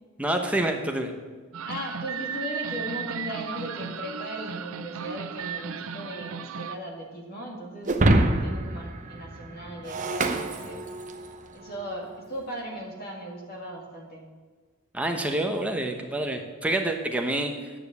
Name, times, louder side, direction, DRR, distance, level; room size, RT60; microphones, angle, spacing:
voice 1, 0.2-1.1 14.9-17.7, right 1 dB, 5° right, 3 dB, 1.0 m, -27 dB
sound 1, 1.5-6.8, right 7 dB, 80° right, 0.6 m, -35 dB
voice 2, 1.6-10.8 11.5-14.3, equal, 45° left, -1 dB, 2.3 m, -38 dB
Shatter, 7.9-11.3, right 1 dB, 35° right, 0.8 m, -25 dB
9.6 x 6.8 x 8.2 m, 1.4 s
head